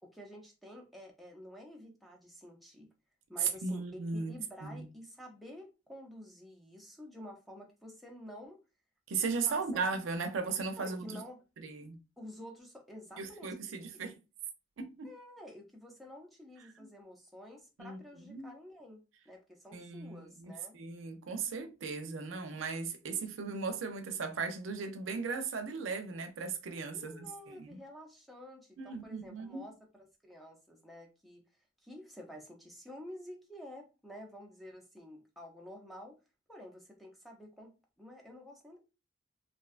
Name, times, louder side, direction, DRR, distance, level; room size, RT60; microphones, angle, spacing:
voice 1, 0.0-2.9 3.3-8.6 9.5-9.8 10.8-11.4 12.2-13.7 15.0-19.0 19.3-20.8 26.9-31.4 31.8-36.2 36.5-38.8, equal, ahead, 0.5 m, -50 dB
voice 2, 3.4-4.3 4.6-4.8 9.1-11.2 11.6-12.0 13.2-14.1 14.8-15.1 17.8-18.0 18.3-18.5 19.7-27.8 28.8-29.7, right 5 dB, 85° right, 0.4 m, -37 dB
2.5 x 2.2 x 2.4 m
head